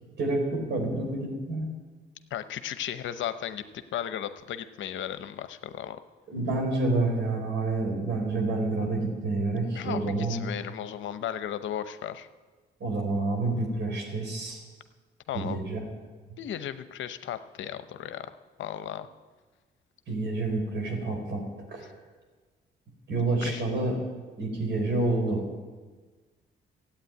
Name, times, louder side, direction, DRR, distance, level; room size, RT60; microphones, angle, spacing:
voice 1, 0.2-1.7 6.3-10.4 12.8-14.6 15.3-15.8 20.1-21.4 21.7-21.9 23.1-23.9 24.4-25.4, right 2 dB, 65° right, 2 dB, 4.5 m, -28 dB
voice 2, 2.3-6.0 9.7-12.3 15.3-15.6 16.4-18.3 18.6-19.1 23.4-23.6, left 10 dB, 75° left, 12 dB, 0.8 m, -35 dB
14.5 x 8.7 x 9.1 m, 1.4 s
cardioid pair, 90°, 20 cm